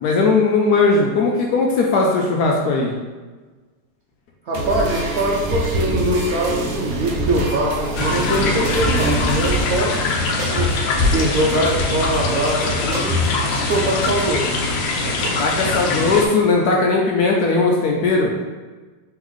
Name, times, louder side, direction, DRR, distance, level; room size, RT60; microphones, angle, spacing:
voice 1, 0.0-2.9 15.4-18.3, left 3 dB, 70° left, -1 dB, 0.9 m, -18 dB
voice 2, 4.5-10.0 10.5-10.7 11.1-14.5 15.0-15.3, right 1 dB, 70° right, -3 dB, 0.9 m, -22 dB
sound 1, 4.5-14.6, right 1 dB, 90° right, 0.6 m, -25 dB
sound 2, 7.9-16.3, left 3 dB, 85° left, 1.3 m, -22 dB
3.8 x 3.5 x 3.1 m, 1.3 s
omnidirectional pair, 2.0 m